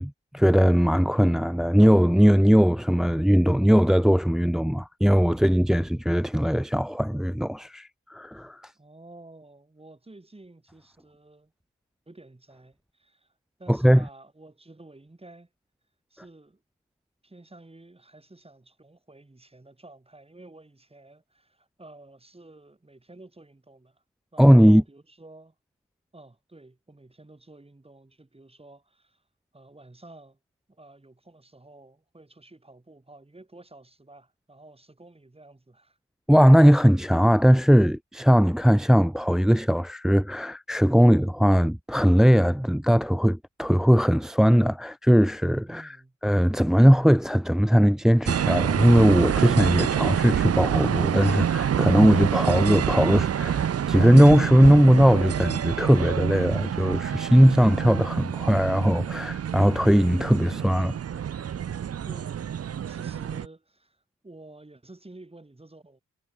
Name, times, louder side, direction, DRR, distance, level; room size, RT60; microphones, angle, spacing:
voice 1, 0.0-8.7 13.7-14.0 24.4-24.8 36.3-45.9 46.2-60.9, equal, ahead, 0.7 m, -19 dB
voice 2, 8.8-11.5 12.1-13.3 13.6-15.5 16.1-16.6 17.2-24.0 24.3-25.5 26.1-29.2 29.5-30.4 30.7-36.0 45.7-46.2 62.0-66.0, right 2 dB, 20° right, 5.6 m, -50 dB
sound 1, 48.3-63.5, right 9 dB, 50° right, 0.7 m, -27 dB
cardioid pair, 85°, 32 cm